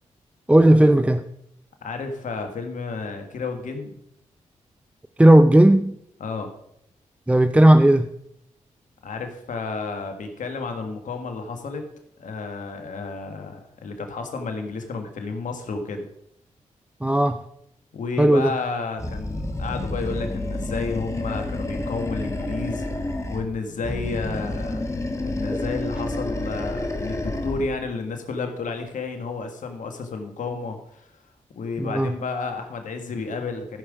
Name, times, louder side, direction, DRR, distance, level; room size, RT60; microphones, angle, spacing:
voice 1, 0.5-1.2 5.2-5.9 7.3-8.1 17.0-17.4 18.2-18.5 25.5-25.6 31.8-32.1, right 1 dB, 10° right, 0.5 m, -15 dB
voice 2, 1.8-3.9 6.2-6.5 9.0-11.8 12.2-16.0 17.9-22.9 23.3-24.9 25.2-31.1 31.5-33.8, left 4 dB, 70° left, 1.7 m, -31 dB
Animal, 19.0-23.5 23.8-27.7, left 1 dB, 20° left, 1.6 m, -29 dB
14.5 x 5.5 x 4.9 m
supercardioid pair, 50°, 13 cm